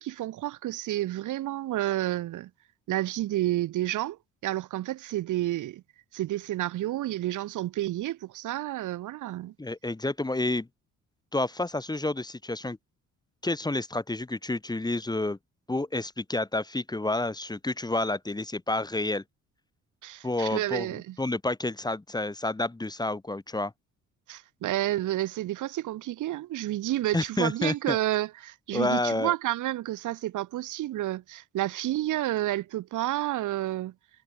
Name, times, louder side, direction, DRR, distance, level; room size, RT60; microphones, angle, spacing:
voice 1, 0.0-2.5 2.9-4.2 4.4-5.8 6.1-9.5 20.0-21.2 24.3-33.9, right 14 dB, 85° right, 2.6 m, -30 dB
voice 2, 9.6-10.7 11.3-12.8 13.4-15.4 15.7-19.2 20.2-23.7 27.1-28.0 28.7-29.3, left 2 dB, 15° left, 1.7 m, -29 dB
cardioid pair, 90°, 30 cm